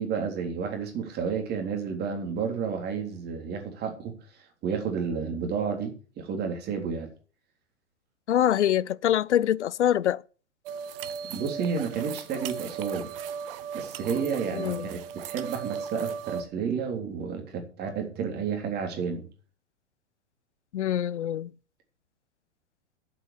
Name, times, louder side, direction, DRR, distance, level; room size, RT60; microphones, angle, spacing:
voice 1, 0.0-4.1 4.6-7.1 11.3-13.2 13.7-19.2, right 6 dB, 30° right, 3.5 m, -31 dB
voice 2, 8.3-10.2 14.5-14.9 20.7-21.5, left 11 dB, 70° left, 0.6 m, -24 dB
sound 1, 10.7-16.4, right 7 dB, 50° right, 1.2 m, -36 dB
8.5 x 7.9 x 8.4 m
figure-of-eight pair, 105°, 36 cm